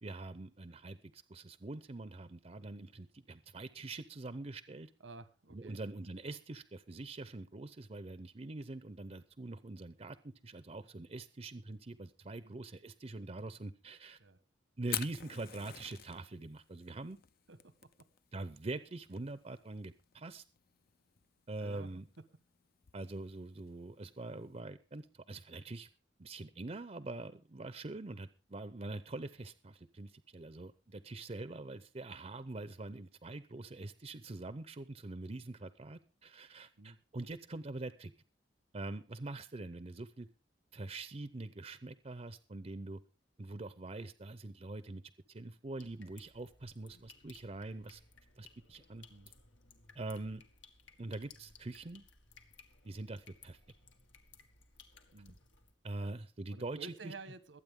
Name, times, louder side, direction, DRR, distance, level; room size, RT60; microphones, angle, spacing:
voice 1, 0.0-4.9 5.5-14.2 14.8-17.2 18.3-20.4 21.5-22.1 22.9-25.9 26.2-38.1 38.7-40.3 40.7-43.0 43.4-45.0 45.3-48.0 48.4-49.1 49.9-50.4 51.0-52.0 52.8-53.6 55.8-57.1, right 2 dB, 35° right, 13 dB, 0.6 m, -44 dB
voice 2, 5.0-5.8 14.2-14.4 17.5-17.6 21.6-21.9 36.8-37.0 49.1-49.3 55.1-55.3 56.0-56.1 56.5-57.6, right 3 dB, 85° right, 13 dB, 1.3 m, -50 dB
Fire, 14.8-24.6, left 11 dB, 55° left, 0.6 m, -48 dB
sound 1, 45.8-55.7, left 5 dB, 90° left, 1.9 m, -61 dB
23.0 x 8.8 x 3.7 m, 0.32 s
head